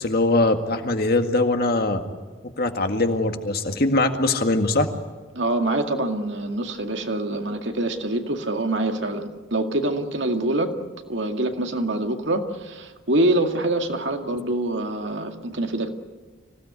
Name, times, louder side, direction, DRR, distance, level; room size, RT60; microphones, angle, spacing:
voice 1, 0.0-2.0 2.6-4.9, left 2 dB, 50° left, 5 dB, 1.9 m, -21 dB
voice 2, 5.3-10.7 11.1-15.9, right 1 dB, 65° right, 4 dB, 2.2 m, -25 dB
25.5 x 17.0 x 9.7 m, 1.4 s
head